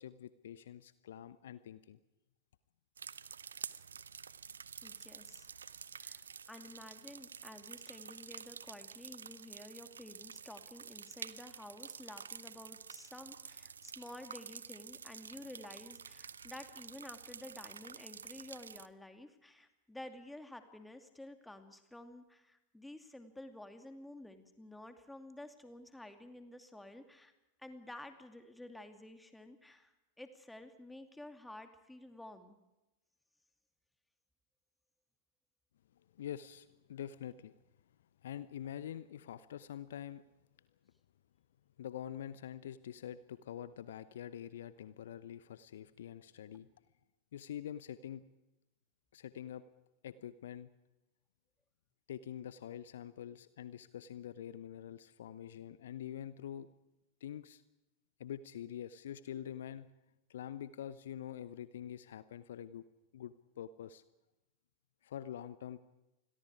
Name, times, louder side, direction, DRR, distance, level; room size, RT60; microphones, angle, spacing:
voice 1, 0.0-2.0 36.1-37.5 38.2-40.2 41.8-46.7 47.3-48.2 49.1-49.6 50.0-50.7 52.1-56.7 57.2-57.6 58.2-59.9 60.3-62.9 63.1-64.0 65.0-65.8, left 10 dB, 60° left, 15 dB, 0.9 m, -45 dB
sound 1, 3.0-18.9, right 6 dB, 70° right, 0.7 m, -49 dB
voice 2, 4.8-5.5 5.9-27.3 27.6-32.6, left 1 dB, 5° left, 7 dB, 2.5 m, -51 dB
28.0 x 22.0 x 4.9 m, 0.97 s
figure-of-eight pair, 90°, 0 cm